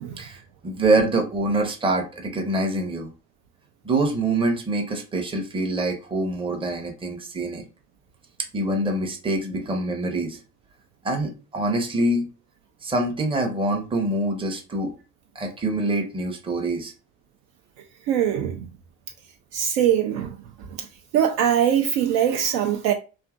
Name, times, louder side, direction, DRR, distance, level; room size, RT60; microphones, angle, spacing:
voice 1, 0.2-3.1 3.8-7.6 8.5-10.4 11.0-12.3 12.8-14.9 15.4-16.9, right 2 dB, 10° right, 0.6 m, -25 dB
voice 2, 18.1-18.7 19.5-20.3 21.1-22.9, right 9 dB, 55° right, 0.5 m, -22 dB
2.7 x 2.5 x 2.3 m
figure-of-eight pair, 55°, 48 cm